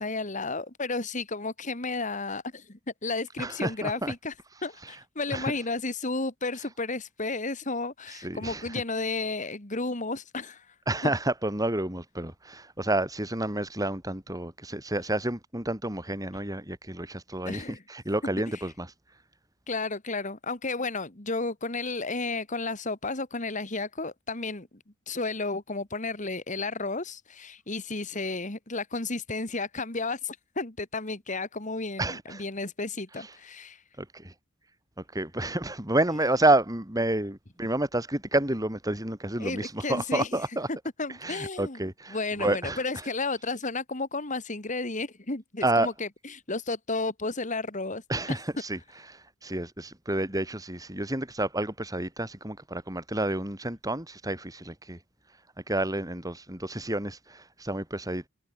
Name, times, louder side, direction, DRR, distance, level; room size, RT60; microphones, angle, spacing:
voice 1, 0.0-4.3 4.6-10.6 11.0-11.1 17.4-17.8 19.7-33.8 39.4-40.3 40.7-41.8 42.1-48.0 48.3-48.4, left 3 dB, 40° left, 2.4 m, -32 dB
voice 2, 3.4-4.1 4.8-4.9 5.3-5.5 8.1-8.8 10.9-18.9 32.0-32.4 33.2-33.3 34.0-34.3 35.0-40.7 41.2-43.1 45.6-45.9 48.1-48.8 49.1-55.0 55.7-58.3, right 1 dB, 20° right, 5.3 m, -29 dB
head